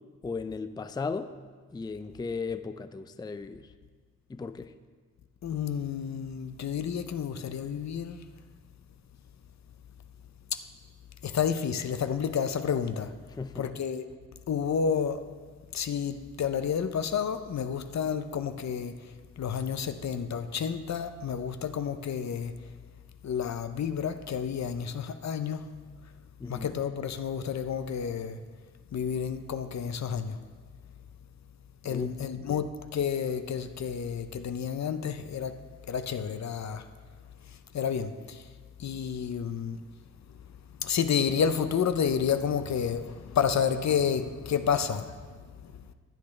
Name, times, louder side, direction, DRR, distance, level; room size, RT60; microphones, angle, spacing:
voice 1, 0.2-1.3 1.7-3.7 4.3-4.7 13.3-13.7 26.4-26.7 31.8-32.1 32.4-32.6, left 4 dB, 15° left, 0.4 m, -36 dB
voice 2, 5.4-8.3 10.5-10.6 11.2-13.2 13.5-14.1 14.5-15.2 15.7-22.6 23.2-25.7 26.5-28.4 28.9-30.4 31.8-36.9 37.5-38.5 38.8-39.8 40.8-45.9, left 7 dB, 70° left, 0.6 m, -30 dB
15.0 x 8.5 x 3.2 m
cardioid pair, 80°, 29 cm